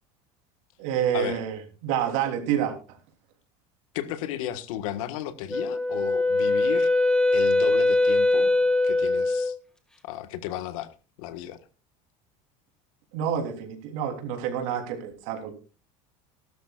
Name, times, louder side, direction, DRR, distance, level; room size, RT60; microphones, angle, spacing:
voice 1, 0.8-2.8 13.1-15.5, right 9 dB, 75° right, 3.3 m, -28 dB
voice 2, 3.9-6.9 7.3-8.5 8.8-9.5 10.0-10.9 11.2-11.6, left 11 dB, 90° left, 1.4 m, -34 dB
Wind instrument woodwind instrument, 5.5-9.6, left 2 dB, 5° left, 1.8 m, -22 dB
19.0 x 12.5 x 2.4 m
cardioid pair, 145°, 17 cm